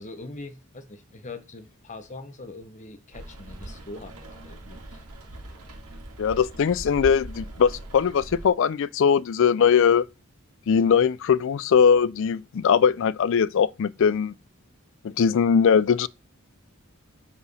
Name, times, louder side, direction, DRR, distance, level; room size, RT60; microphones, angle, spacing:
voice 1, 0.0-5.0, left 2 dB, 35° left, 0.9 m, -42 dB
Rain, 3.1-8.5, right 1 dB, 85° right, 2.2 m, -41 dB
voice 2, 6.2-10.1 10.7-14.3 15.0-16.1, left 7 dB, 60° left, 0.4 m, -20 dB
5.5 x 4.9 x 6.1 m
head